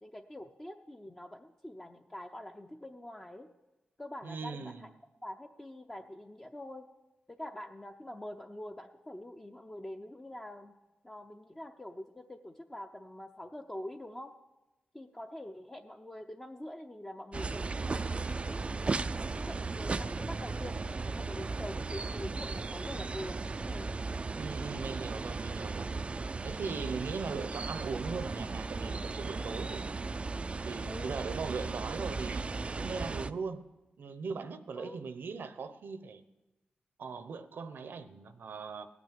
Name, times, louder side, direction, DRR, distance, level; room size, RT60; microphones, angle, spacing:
voice 1, 0.0-3.5 4.0-4.9 5.2-6.9 7.3-10.7 11.0-14.4 14.9-18.6 19.3-24.0 30.9-31.2 34.8-35.0, left 1 dB, 15° left, 0.7 m, -45 dB
voice 2, 4.2-4.9 24.4-25.9 26.4-30.2 30.6-32.4 32.8-33.6 34.0-36.2 37.0-38.9, right 5 dB, 80° right, 0.8 m, -39 dB
sound 1, 17.3-33.3, right 3 dB, 35° right, 0.4 m, -36 dB
17.0 x 6.1 x 9.1 m
wide cardioid pair, 100°, 3 cm